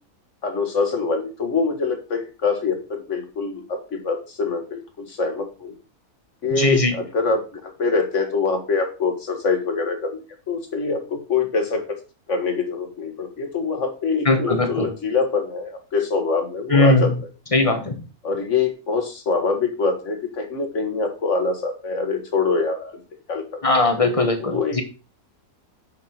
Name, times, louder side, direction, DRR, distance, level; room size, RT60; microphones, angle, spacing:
voice 1, 0.4-5.8 6.4-12.0 12.3-17.1 18.2-23.0 23.3-23.7 24.4-24.8, left 4 dB, 55° left, 5 dB, 2.1 m, -24 dB
voice 2, 6.6-6.9 14.2-14.9 16.7-17.1 17.5-17.9 23.6-24.8, left 2 dB, 25° left, 7 dB, 1.2 m, -19 dB
9.6 x 5.9 x 4.4 m, 0.32 s
omnidirectional pair, 1.5 m